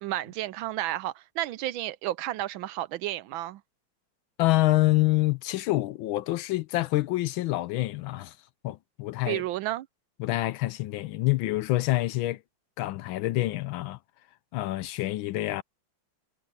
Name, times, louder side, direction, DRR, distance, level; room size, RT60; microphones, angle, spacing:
voice 1, 0.0-3.6 9.3-9.9, right 14 dB, 75° right, 1.3 m, -32 dB
voice 2, 4.4-8.3 8.6-9.4 10.2-12.4 12.8-14.0 14.5-15.6, left 18 dB, 75° left, 1.3 m, -26 dB
omnidirectional pair, 2.4 m